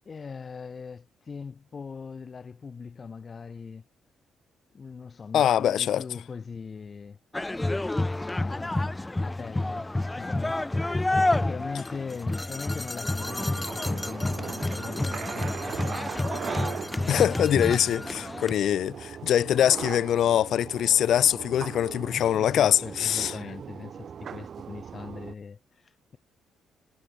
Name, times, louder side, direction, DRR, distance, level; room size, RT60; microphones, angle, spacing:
voice 1, 0.1-3.8 4.7-7.2 8.2-10.6 11.3-16.3 17.7-18.3 18.6-18.8 22.1-26.2, left 5 dB, 40° left, 5.4 m, -41 dB
voice 2, 5.3-6.0 17.1-23.3, left 10 dB, 70° left, 0.6 m, -23 dB
sound 1, 7.3-18.5, left 2 dB, 15° left, 0.6 m, -29 dB
sound 2, 13.2-25.3, right 7 dB, 55° right, 1.8 m, -39 dB
cardioid pair, 90°, 0 cm